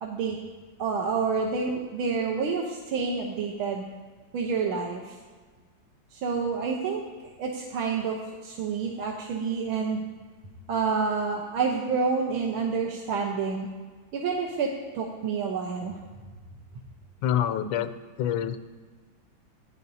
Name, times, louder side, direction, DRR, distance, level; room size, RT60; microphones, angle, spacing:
voice 1, 0.0-0.4 0.8-3.8 4.3-5.2 6.1-10.0 10.7-13.7 14.1-16.0, right 5 dB, 90° right, -1 dB, 1.8 m, -28 dB
voice 2, 17.2-18.6, left 10 dB, 80° left, 10 dB, 1.4 m, -27 dB
16.0 x 9.8 x 2.8 m, 1.4 s
omnidirectional pair, 2.2 m